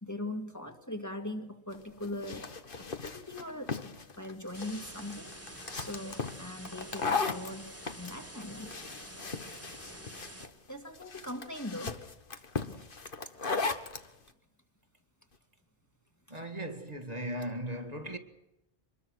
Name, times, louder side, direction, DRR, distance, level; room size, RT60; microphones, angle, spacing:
voice 1, 0.0-2.5 2.8-3.8 4.2-8.8 10.7-12.0 12.7-12.9 16.3-16.4, left 1 dB, 15° left, 2.1 m, -41 dB
sound 1, 1.7-14.1, left 4 dB, 55° left, 1.6 m, -37 dB
sound 2, 4.5-10.5, right 1 dB, 15° right, 2.3 m, -48 dB
voice 2, 16.3-18.2, right 1 dB, 35° right, 2.1 m, -37 dB
25.5 x 21.5 x 6.4 m
omnidirectional pair, 1.1 m